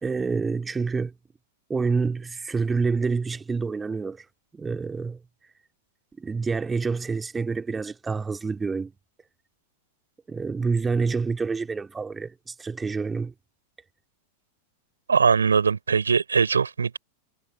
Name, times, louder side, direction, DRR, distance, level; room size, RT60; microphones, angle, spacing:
voice 1, 0.0-1.1 1.7-4.3 4.5-5.2 6.2-8.9 10.3-13.3, right 4 dB, 15° right, 2.4 m, -27 dB
voice 2, 15.1-17.0, right 5 dB, 75° right, 4.0 m, -21 dB
figure-of-eight pair, 90°, 0 cm